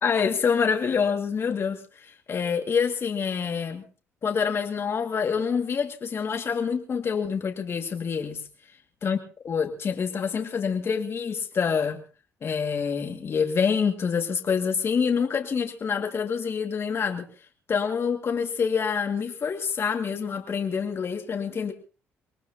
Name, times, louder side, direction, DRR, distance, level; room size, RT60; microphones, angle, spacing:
voice 1, 0.0-3.8 4.2-8.4 9.0-9.2 9.4-12.0 12.4-17.3 17.7-21.7, left 6 dB, 50° left, 4 dB, 2.1 m, -26 dB
24.5 x 19.0 x 2.8 m, 0.35 s
supercardioid pair, 65°, 5 cm